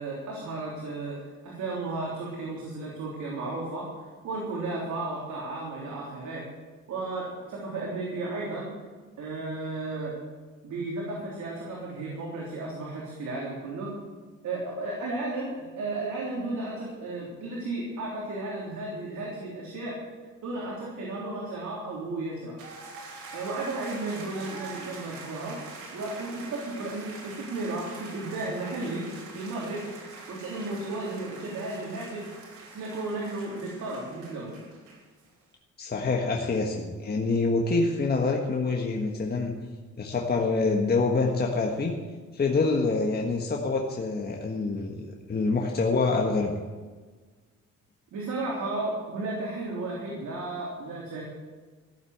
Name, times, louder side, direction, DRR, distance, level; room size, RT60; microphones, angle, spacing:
voice 1, 0.0-3.9 4.2-6.4 6.9-8.7 9.2-10.2 10.6-13.9 14.4-20.0 20.4-22.6 23.3-25.6 25.9-29.1 29.3-29.9 30.3-32.2 32.7-34.6 48.1-51.2, right 2 dB, 70° right, -4 dB, 3.5 m, -34 dB
sound 1, 22.6-35.3, right 4 dB, 85° right, 3.1 m, -44 dB
voice 2, 35.8-39.6 40.0-41.9 42.3-46.6, left 3 dB, 30° left, 1 dB, 1.5 m, -26 dB
14.5 x 8.0 x 7.8 m, 1.4 s
cardioid pair, 90°, 30 cm